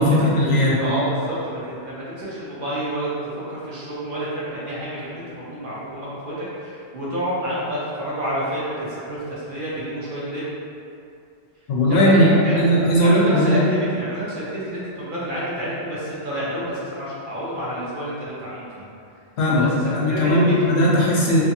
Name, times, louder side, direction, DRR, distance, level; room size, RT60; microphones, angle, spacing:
voice 1, 0.0-0.8 11.7-13.6 19.4-21.4, equal, 70° left, -5 dB, 0.8 m, -18 dB
voice 2, 0.8-3.1 3.5-10.5 11.9-18.8 19.4-20.6, equal, 55° right, -8 dB, 0.8 m, -29 dB
2.6 x 2.5 x 2.6 m, 2.5 s
omnidirectional pair, 1.1 m